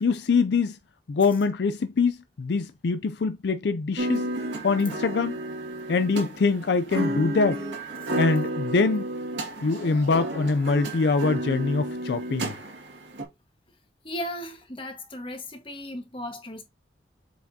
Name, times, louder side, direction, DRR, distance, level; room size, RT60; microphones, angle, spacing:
voice 1, 0.0-0.8 1.1-4.3 4.6-5.4 5.9-7.6 8.2-9.1 9.6-12.6, left 4 dB, 70° left, 0.4 m, -24 dB
sound 1, 4.0-13.2, right 1 dB, 85° right, 2.1 m, -32 dB
voice 2, 14.0-16.6, left 1 dB, 30° left, 1.4 m, -36 dB
7.9 x 4.6 x 2.8 m
head